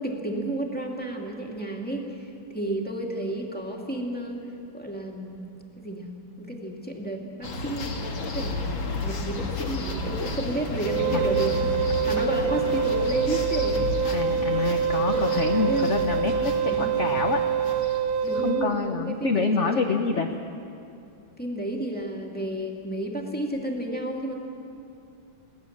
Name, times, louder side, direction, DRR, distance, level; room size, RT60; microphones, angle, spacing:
voice 1, 0.0-2.2 2.5-4.4 4.7-5.4 5.8-6.1 6.4-13.9 15.5-16.0 16.7-17.0 18.2-20.0 21.4-24.3, right 1 dB, 5° left, 0 dB, 2.1 m, -32 dB
sound 1, 7.4-18.5, left 3 dB, 70° left, 2.5 m, -32 dB
Wind instrument woodwind instrument, 10.9-18.7, right 8 dB, 65° right, 1.1 m, -25 dB
voice 2, 14.1-17.4 18.4-20.3, left 4 dB, 50° left, 4 dB, 0.9 m, -27 dB
23.0 x 17.5 x 7.3 m, 2.6 s
omnidirectional pair, 2.2 m